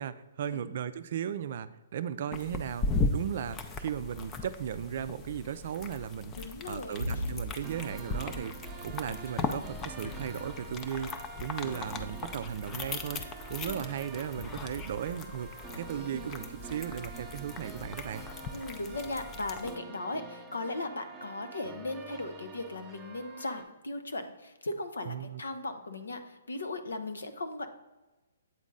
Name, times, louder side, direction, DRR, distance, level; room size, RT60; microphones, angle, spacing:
voice 1, 0.0-11.1 11.4-18.2 25.1-25.4, right 9 dB, 55° right, 13 dB, 0.4 m, -36 dB
sound 1, 2.3-19.8, left 3 dB, 20° left, 0.5 m, -38 dB
voice 2, 6.4-7.0 13.6-13.9 18.5-27.7, left 2 dB, 90° left, 10 dB, 0.7 m, -38 dB
sound 2, 7.0-18.3, left 1 dB, 75° left, 1.1 m, -45 dB
sound 3, 7.6-23.6, right 4 dB, 15° right, 0.7 m, -47 dB
8.0 x 4.1 x 3.7 m, 1.1 s
hypercardioid pair, 140°, 0 cm